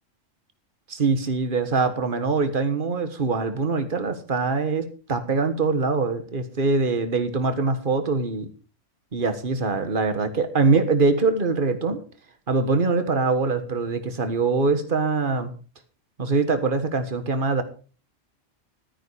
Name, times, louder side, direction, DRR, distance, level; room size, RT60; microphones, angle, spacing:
voice 1, 0.9-8.5 9.1-12.0 12.5-15.5 16.2-17.6, right 4 dB, 45° right, 9 dB, 1.7 m, -23 dB
13.0 x 9.7 x 4.9 m, 0.36 s
omnidirectional pair, 1.3 m